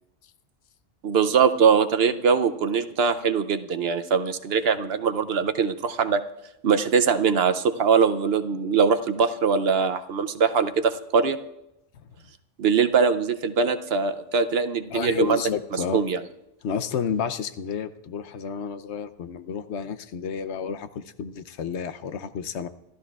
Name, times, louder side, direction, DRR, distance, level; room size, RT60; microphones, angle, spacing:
voice 1, 1.0-6.2 6.6-11.4 12.6-15.4 15.9-16.2, right 6 dB, 60° right, 10 dB, 0.8 m, -22 dB
voice 2, 14.9-16.0 16.6-22.7, left 7 dB, 70° left, 11 dB, 0.9 m, -31 dB
27.5 x 13.0 x 2.4 m, 0.87 s
omnidirectional pair, 1.2 m